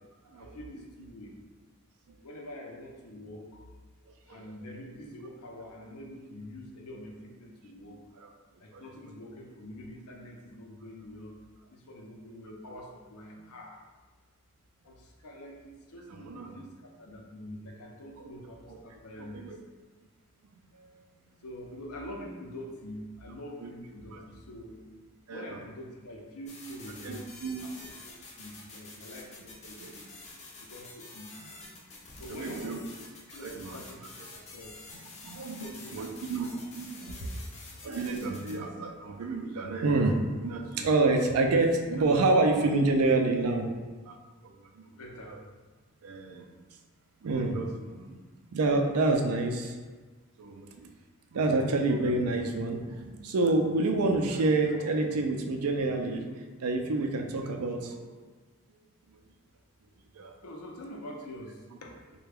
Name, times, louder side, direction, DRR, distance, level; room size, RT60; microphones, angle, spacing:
voice 1, 0.3-1.4 2.2-3.7 4.2-8.0 8.6-11.4 11.7-13.8 14.8-19.7 21.4-24.8 25.3-30.1 30.6-31.7 32.2-32.9 33.3-34.0 34.3-34.7 35.5-36.1 37.2-37.3 44.9-45.4 59.9-60.0 60.4-62.0, left 1 dB, 90° left, 1 dB, 0.6 m, -45 dB
voice 2, 16.1-16.5 18.7-18.8 19.2-19.6 20.8-21.0 23.6-23.7 24.1-24.2 25.3-25.5 27.0-27.7 29.8-29.9 32.3-32.8 33.4-33.8 35.2-37.3 37.8-43.7 44.1-44.8 46.0-46.5 47.2-48.2 48.5-49.8 50.4-50.9 51.3-58.0 60.1-60.3, right 2 dB, 85° right, 4 dB, 0.4 m, -28 dB
sound 1, 26.5-38.6, left 3 dB, 30° left, 0.4 m, -48 dB
3.2 x 2.2 x 3.4 m, 1.3 s
head